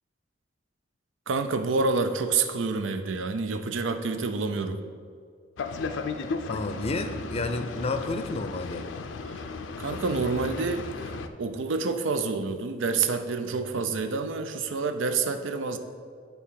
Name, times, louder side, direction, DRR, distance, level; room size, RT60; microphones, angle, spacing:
voice 1, 1.3-4.8 9.3-9.5 9.8-15.8, right 4 dB, 90° right, 8 dB, 0.5 m, -28 dB
Boat Water vehicle, 5.6-11.3, left 4 dB, 85° left, 0.5 m, -35 dB
voice 2, 6.5-8.8, left 2 dB, 35° left, 8 dB, 0.5 m, -30 dB
9.5 x 3.5 x 5.7 m, 2.1 s
head